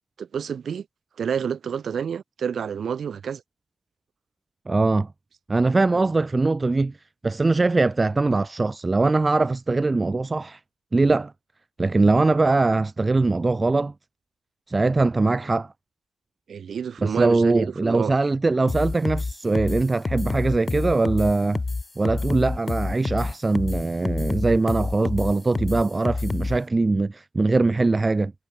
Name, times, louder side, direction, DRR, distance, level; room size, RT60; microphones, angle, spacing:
voice 1, 0.2-0.9 1.2-3.4 5.9-6.1 16.5-18.2, right 7 dB, 50° right, 1.8 m, -29 dB
voice 2, 4.7-5.1 5.5-6.9 7.2-10.6 10.9-11.3 11.8-13.9 14.7-15.7 17.0-21.6 22.0-28.3, right 3 dB, 20° right, 0.6 m, -21 dB
sound 1, 18.7-26.6, left 3 dB, 25° left, 0.4 m, -27 dB
cardioid pair, 90°, 0 cm